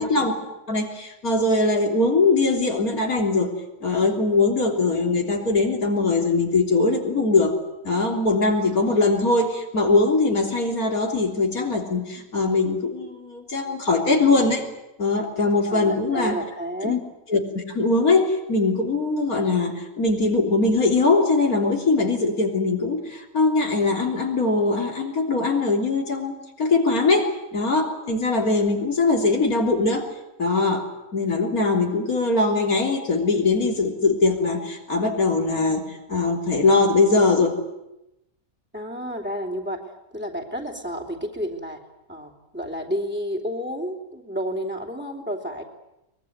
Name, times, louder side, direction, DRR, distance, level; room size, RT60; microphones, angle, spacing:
voice 1, 0.0-3.5 3.8-7.5 7.8-14.6 15.0-16.4 16.8-17.0 17.3-26.3 26.6-30.1 30.4-30.9 31.1-35.8 36.1-37.5, left 3 dB, 90° left, 2 dB, 4.0 m, -21 dB
voice 2, 15.7-17.0 38.7-41.8 42.1-45.6, equal, 5° right, 1 dB, 3.1 m, -31 dB
23.0 x 21.5 x 9.5 m, 0.90 s
omnidirectional pair, 1.5 m